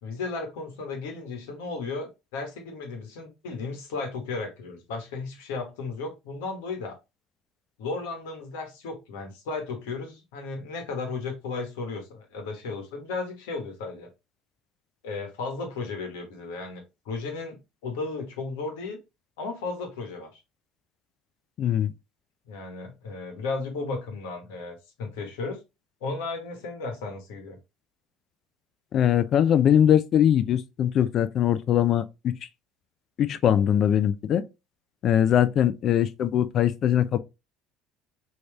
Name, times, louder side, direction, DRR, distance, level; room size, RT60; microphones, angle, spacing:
voice 1, 0.0-7.0 7.8-14.1 15.0-19.0 19.4-20.3 22.5-25.6 26.0-27.6, left 3 dB, 80° left, 1.2 m, -34 dB
voice 2, 21.6-21.9 28.9-32.3 33.2-34.4 35.0-37.2, left 10 dB, 50° left, 0.4 m, -21 dB
3.1 x 2.8 x 3.2 m
hypercardioid pair, 85°, 0 cm